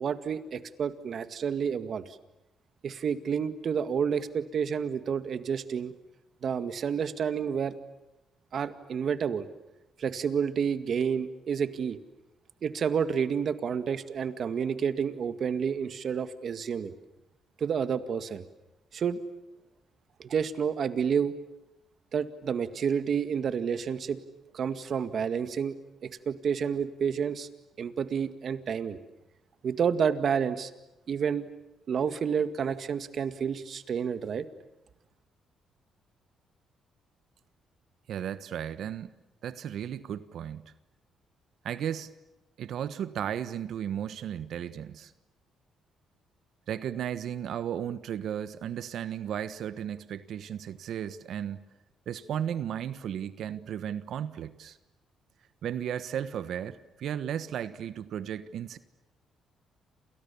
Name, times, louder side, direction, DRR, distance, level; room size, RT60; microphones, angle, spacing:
voice 1, 0.0-2.2 2.8-5.9 6.4-7.7 8.5-9.5 10.0-12.0 12.6-17.0 17.6-18.4 18.9-19.2 20.2-21.3 22.1-24.2 24.5-25.8 26.0-27.5 27.8-29.0 29.6-30.7 31.1-31.5 31.9-34.5, right 7 dB, 55° right, 10 dB, 2.0 m, -29 dB
voice 2, 38.1-39.1 39.4-40.7 41.6-42.1 42.6-45.1 46.7-51.6 52.1-54.8 55.6-58.8, right 9 dB, 70° right, 13 dB, 1.2 m, -35 dB
29.0 x 29.0 x 7.1 m, 0.95 s
cardioid pair, 90°, 0 cm